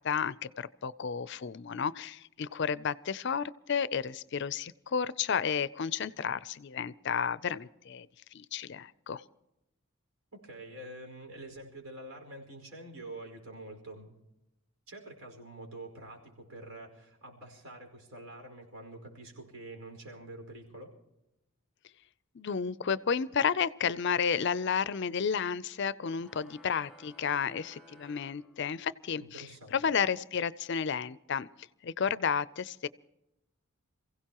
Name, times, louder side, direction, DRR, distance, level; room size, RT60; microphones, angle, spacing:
voice 1, 0.0-8.1 8.3-9.2 22.3-31.5 31.8-32.9, left 6 dB, 55° left, 17 dB, 0.5 m, -32 dB
voice 2, 10.3-14.2 14.9-20.9 29.2-29.8, right 1 dB, 75° right, 2 dB, 5.0 m, -47 dB
sound 1, 26.2-29.1, equal, ahead, 1.4 m, -57 dB
28.0 x 16.0 x 3.0 m, 0.89 s
head